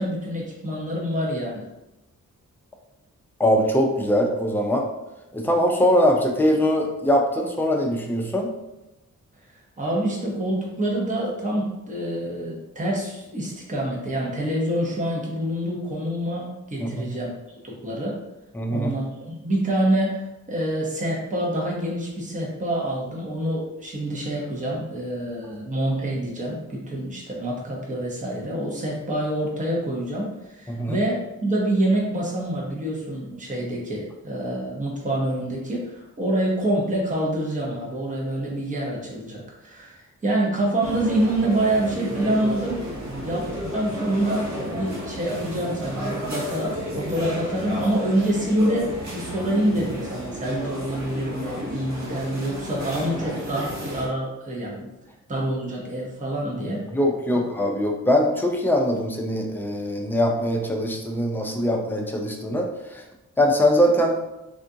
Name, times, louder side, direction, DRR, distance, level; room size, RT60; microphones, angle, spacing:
voice 1, 0.0-1.7 9.8-17.3 17.6-18.2 18.7-42.8 43.2-54.9 55.3-56.9, right 1 dB, 25° right, -3 dB, 0.8 m, -26 dB
voice 2, 3.4-4.9 5.3-8.5 16.8-17.1 18.5-18.9 30.7-31.0 56.9-63.0 63.4-64.2, equal, 5° left, 1 dB, 0.4 m, -22 dB
sound 1, 40.8-54.1, equal, 60° right, 0.9 m, -32 dB
3.6 x 2.4 x 2.7 m, 0.94 s
wide cardioid pair, 115°, 31 cm